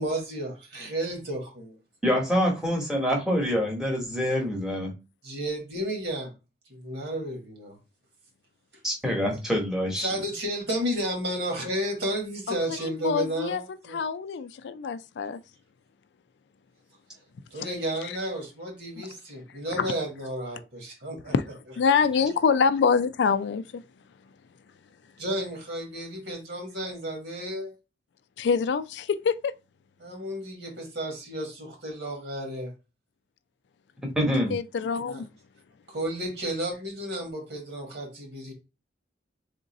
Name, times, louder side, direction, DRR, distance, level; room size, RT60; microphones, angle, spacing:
voice 1, 0.0-1.8 5.2-6.3 6.7-7.8 10.0-14.0 17.5-21.3 25.2-27.7 30.0-32.7 35.1-35.2 35.9-38.5, right 1 dB, 70° right, 1.6 m, -32 dB
voice 2, 2.0-4.9 8.8-10.1 34.1-34.5, equal, 5° right, 1.0 m, -25 dB
voice 3, 12.5-13.6 13.9-15.4 18.0-18.1 19.8-19.9 21.3-21.4 21.8-23.8 28.4-29.5 34.5-35.3, left 6 dB, 70° left, 0.3 m, -25 dB
3.6 x 2.6 x 4.0 m
head